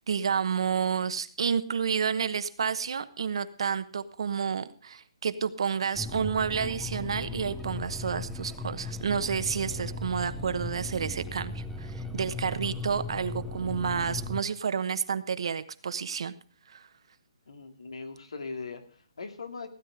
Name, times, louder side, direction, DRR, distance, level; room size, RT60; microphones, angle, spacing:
voice 1, 0.1-16.3 16.7-16.9, right 6 dB, 65° right, 12 dB, 1.1 m, -30 dB
sound 1, 5.9-14.4, left 2 dB, ahead, 0.8 m, -37 dB
voice 2, 17.5-19.7, left 4 dB, 85° left, 7 dB, 2.5 m, -40 dB
17.0 x 9.3 x 5.0 m, 0.42 s
hypercardioid pair, 160°, 3 cm